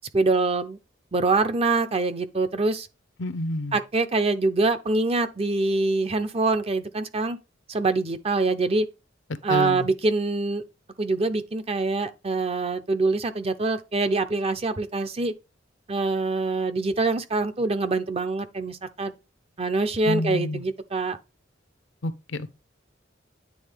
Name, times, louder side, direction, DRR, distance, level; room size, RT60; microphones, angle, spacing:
voice 1, 0.1-0.8 1.1-2.9 3.7-7.4 7.7-8.9 9.4-10.6 11.0-15.3 15.9-19.1 19.6-21.2, right 3 dB, 30° right, 0.6 m, -24 dB
voice 2, 3.2-3.8 9.5-9.9 20.0-20.6 22.0-22.5, left 1 dB, 70° left, 0.7 m, -28 dB
9.4 x 3.7 x 3.3 m
head